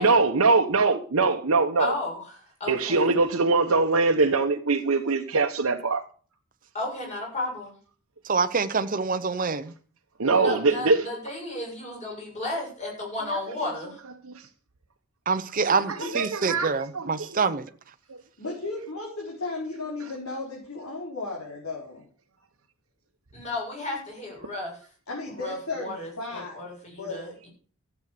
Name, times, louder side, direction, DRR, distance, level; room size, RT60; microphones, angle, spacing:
voice 1, 0.0-1.9 2.7-6.0 10.2-11.1 13.3-13.4 14.2-14.5 15.9-17.4, right 3 dB, 80° right, 1.1 m, -23 dB
voice 2, 1.8-3.0 6.7-7.7 10.2-14.0 15.6-16.1 23.3-24.8 25.4-27.5, left 2 dB, 35° left, 7.1 m, -34 dB
voice 3, 8.2-9.7 15.3-17.7, right 4 dB, 40° right, 0.8 m, -26 dB
voice 4, 18.4-22.0 25.1-27.5, left 3 dB, 85° left, 4.5 m, -35 dB
14.0 x 8.2 x 6.7 m
head